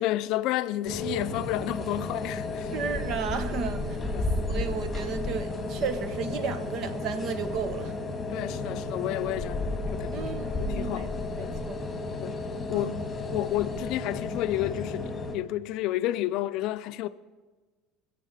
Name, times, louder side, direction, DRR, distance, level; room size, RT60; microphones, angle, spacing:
voice 1, 0.0-2.7 4.1-4.6 8.3-10.3 10.6-11.5 12.2-12.4 12.7-13.0 13.3-17.1, left 15 dB, 60° left, 0.5 m, -31 dB
sound 1, 0.8-15.3, left 2 dB, 15° left, 2.1 m, -33 dB
voice 2, 2.7-4.0 4.5-7.9 10.1-11.1 11.4-11.9 12.7-13.0, right 5 dB, 45° right, 1.1 m, -33 dB
21.0 x 7.6 x 6.7 m
cardioid pair, 135°, 0 cm